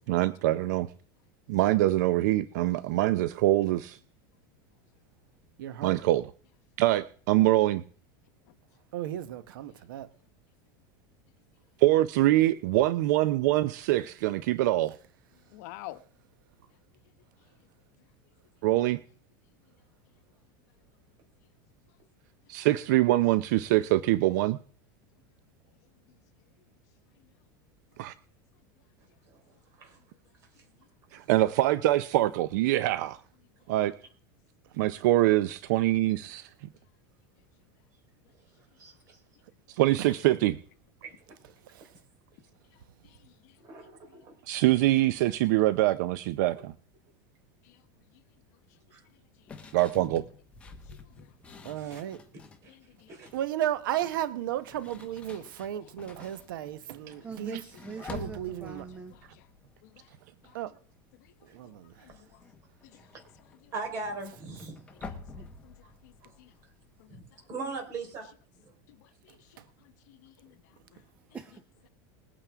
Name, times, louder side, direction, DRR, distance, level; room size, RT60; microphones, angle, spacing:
voice 1, 0.1-0.9 1.5-4.0 5.8-6.3 6.8-7.8 11.8-15.0 18.6-19.0 22.5-24.6 28.0-28.1 31.1-33.2 33.7-33.9 34.8-36.5 39.7-40.6 44.5-46.7 49.7-50.2 56.2-56.3, right 16 dB, 60° right, 0.6 m, -24 dB
voice 2, 5.6-6.0 8.9-10.1 41.7-41.8 51.6-52.2 53.3-57.6 58.1-58.8 60.5-60.7 61.5-62.0 69.6-69.7, right 12 dB, 90° right, 1.1 m, -34 dB
voice 3, 15.5-16.0 47.7-47.8 51.2-51.6 52.7-53.1 57.0-57.1 59.8-60.1 62.0-62.1 65.6-65.7 66.0-66.1 66.4-66.5 67.0-67.1 69.0-69.4 70.1-70.5 70.9-71.0, left 16 dB, 55° left, 1.1 m, -48 dB
voice 4, 29.2-30.0 30.6-30.7 38.7-39.2 41.0-41.4 43.6-44.3 46.5-46.6 48.9-49.1 51.8-52.0 52.6-52.7 53.1-53.3 62.1-62.2 63.7-64.9 66.2-66.4 67.1-68.3 68.6-68.7, right 3 dB, 30° right, 4.0 m, -40 dB
sound 1, 49.5-52.7 53.0-53.5 54.4-60.6 60.9-61.3 61.6-67.1, left 4 dB, 10° left, 1.2 m, -48 dB
voice 5, 57.2-59.2 65.4-65.5 70.7-71.0 71.3-71.6, right 6 dB, 15° right, 0.8 m, -42 dB
21.0 x 8.9 x 3.5 m
supercardioid pair, 175°, 11 cm